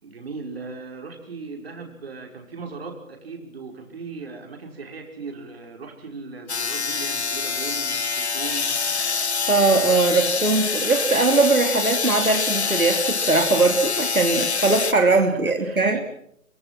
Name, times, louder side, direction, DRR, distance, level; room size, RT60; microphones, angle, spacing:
voice 1, 0.0-8.8 15.1-16.0, right 4 dB, 45° right, 2 dB, 5.7 m, -38 dB
sound 1, 6.5-14.9, left 5 dB, 50° left, 1.9 m, -25 dB
voice 2, 9.5-16.0, right 3 dB, 80° right, 3 dB, 3.1 m, -20 dB
26.0 x 25.0 x 6.1 m, 0.72 s
figure-of-eight pair, 150°, 42 cm